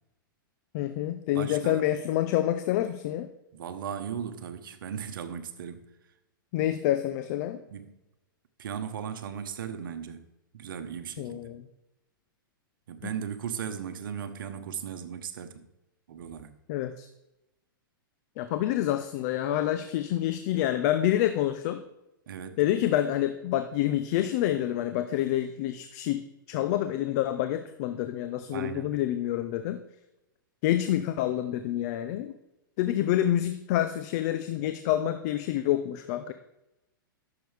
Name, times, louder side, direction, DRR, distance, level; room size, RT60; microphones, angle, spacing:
voice 1, 0.7-3.3 6.5-7.6 11.2-11.6 13.0-13.1 16.7-17.1 18.4-21.8 22.6-29.8 30.6-32.4 32.8-36.3, left 12 dB, 50° left, 0.6 m, -27 dB
voice 2, 1.3-1.8 3.5-5.9 7.7-7.9 8.6-10.3 10.5-11.5 12.9-15.6 16.1-16.5 22.3-22.6 28.5-29.0, right 8 dB, 70° right, 1.1 m, -37 dB
13.5 x 6.9 x 3.4 m
hypercardioid pair, 120°, 12 cm